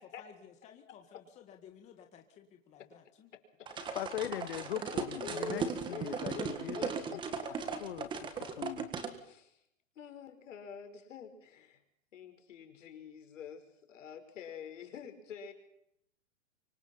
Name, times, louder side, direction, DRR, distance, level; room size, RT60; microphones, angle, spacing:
voice 1, 0.0-3.3 5.1-5.5, left 9 dB, 15° left, 4 dB, 1.8 m, -55 dB
voice 2, 3.3-3.9 5.1-7.5 8.0-8.5 9.0-9.7 10.0-11.8 12.1-15.5, left 6 dB, 70° left, 6 dB, 5.3 m, -47 dB
sound 1, 3.7-9.1, right 5 dB, 10° right, 1.7 m, -37 dB
voice 3, 3.9-6.3 6.6-6.8 7.8-8.1 8.6-8.9, left 13 dB, 50° left, 13 dB, 0.9 m, -39 dB
25.0 x 23.0 x 5.7 m, 0.74 s
hypercardioid pair, 160°, 39 cm